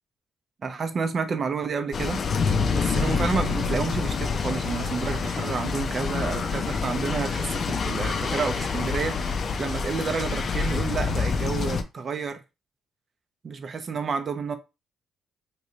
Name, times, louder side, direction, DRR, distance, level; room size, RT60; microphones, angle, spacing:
voice 1, 0.6-2.2 2.7-12.4 13.4-14.5, right 5 dB, 45° right, 0.6 m, -30 dB
sound 1, 1.9-11.8, left 5 dB, 50° left, 0.5 m, -27 dB
3.1 x 2.9 x 2.8 m
cardioid pair, 90°, 0 cm